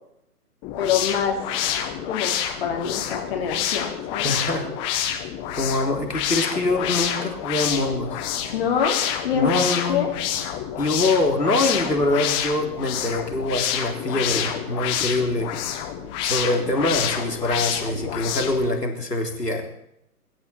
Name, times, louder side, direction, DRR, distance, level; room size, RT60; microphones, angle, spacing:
sound 1, 0.6-18.7, left 10 dB, 10° left, 1.0 m, -28 dB
voice 1, 0.8-1.4 2.0-2.3 2.6-4.3 8.5-9.6 9.9-10.1, left 7 dB, 40° left, 1 dB, 3.2 m, -25 dB
voice 2, 4.2-4.7 5.5-8.2 9.3-10.1 10.8-15.6 16.2-19.6, left 2 dB, 80° left, 2 dB, 3.7 m, -24 dB
24.0 x 12.5 x 4.4 m, 0.79 s
figure-of-eight pair, 130°, 47 cm